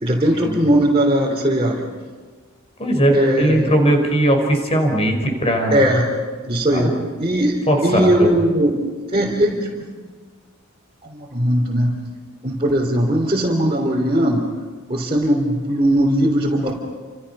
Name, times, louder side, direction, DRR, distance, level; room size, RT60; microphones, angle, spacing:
voice 1, 0.0-1.8 3.1-3.6 5.7-6.1 6.4-6.9 7.2-7.6 7.8-8.8 9.1-9.9 11.0-11.9 12.4-14.5 14.9-16.7, right 1 dB, 25° right, -4 dB, 3.4 m, -18 dB
voice 2, 2.8-5.8 6.7-6.9 7.7-8.3, right 1 dB, 30° left, 4 dB, 5.1 m, -19 dB
29.0 x 28.0 x 5.6 m, 1.4 s
head